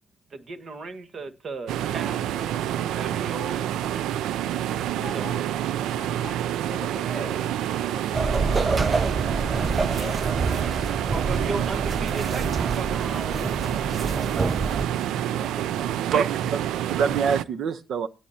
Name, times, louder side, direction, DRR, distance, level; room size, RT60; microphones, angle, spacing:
voice 1, 0.3-3.7 5.1-5.2 7.0-7.5 10.7-14.2 15.2-16.0, right 3 dB, 45° right, 1.5 m, -37 dB
sound 1, 1.7-17.4, right 11 dB, 85° right, 0.4 m, -28 dB
voice 2, 4.7-9.3 9.8-10.4, left 7 dB, 50° left, 0.7 m, -45 dB
sound 2, 8.1-14.8, right 3 dB, 25° right, 0.5 m, -27 dB
voice 3, 16.1-18.1, right 6 dB, 65° right, 0.8 m, -25 dB
17.0 x 7.1 x 2.8 m
cardioid pair, 90°, 0 cm